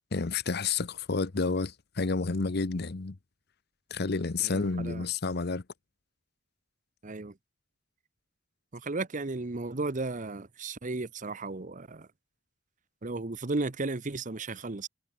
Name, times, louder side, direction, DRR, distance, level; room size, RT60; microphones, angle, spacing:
voice 1, 0.1-3.2 3.9-5.6, left 4 dB, 55° left, 0.8 m, -30 dB
voice 2, 4.4-5.1 7.0-7.4 8.7-12.1 13.0-14.9, right 3 dB, 40° right, 0.9 m, -34 dB
head